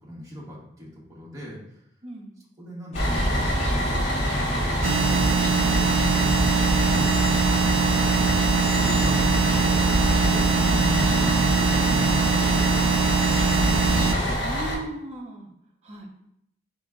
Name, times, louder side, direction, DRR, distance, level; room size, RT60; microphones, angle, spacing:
voice 1, 0.0-1.8 2.6-3.8 9.1-10.5, equal, 15° right, -5 dB, 1.0 m, -42 dB
voice 2, 2.0-2.4 14.4-15.5 15.8-16.1, right 1 dB, 30° right, 1 dB, 0.6 m, -37 dB
Bus, 2.9-14.7, equal, 80° left, 1.1 m, -27 dB
sound 1, 2.9-14.3, equal, 35° left, 0.7 m, -27 dB
sound 2, 4.8-14.2, right 6 dB, 85° right, 0.3 m, -23 dB
4.4 x 2.9 x 3.6 m, 0.76 s
head